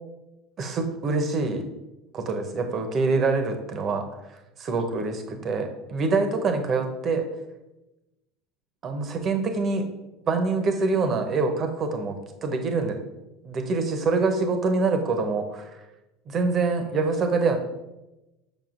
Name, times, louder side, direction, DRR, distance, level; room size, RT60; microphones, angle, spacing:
voice 1, 0.6-1.6 2.1-4.1 4.6-7.3 8.8-9.9 10.3-13.0 13.4-15.7 16.3-17.6, right 3 dB, 40° right, 6 dB, 0.9 m, -25 dB
7.1 x 5.3 x 2.5 m, 0.99 s
figure-of-eight pair, 75°, 0 cm